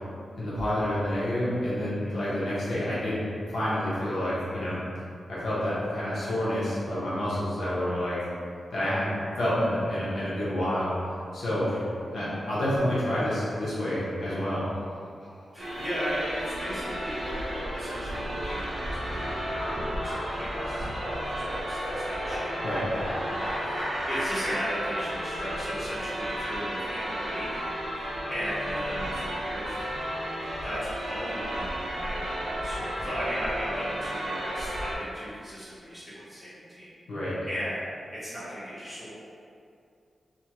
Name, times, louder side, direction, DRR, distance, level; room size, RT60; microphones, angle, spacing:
voice 1, 0.4-3.2 3.5-4.8 5.3-8.2 8.7-11.7 12.1-14.6 22.6-22.8 37.1-37.3, left 1 dB, 80° left, -10 dB, 0.8 m, -28 dB
sound 1, 14.7-15.4 15.7-24.5, equal, 35° left, 1.2 m, -36 dB
voice 2, 15.5-27.7 28.3-29.7 30.6-36.9 37.5-37.8 38.1-39.1, equal, 10° left, -13 dB, 0.9 m, -37 dB
sound 2, 15.6-34.9, equal, 55° right, 0.6 m, -33 dB
2.7 x 2.2 x 2.8 m, 2.4 s
wide cardioid pair, 165°, 0 cm